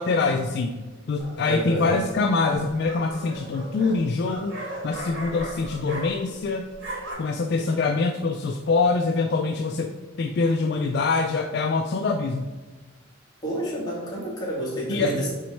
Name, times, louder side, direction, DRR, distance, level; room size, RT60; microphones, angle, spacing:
voice 1, 0.0-4.6 4.8-6.7 7.2-9.9 10.2-12.5 14.9-15.1, left 3 dB, 50° left, 5 dB, 0.3 m, -24 dB
sound 1, 1.2-1.6 2.5-6.4 6.7-7.1, right 1 dB, 60° right, 1.9 m, -37 dB
voice 2, 1.5-2.0 13.4-15.3, right 1 dB, 20° left, -5 dB, 1.6 m, -29 dB
7.2 x 3.1 x 4.5 m, 1.3 s
head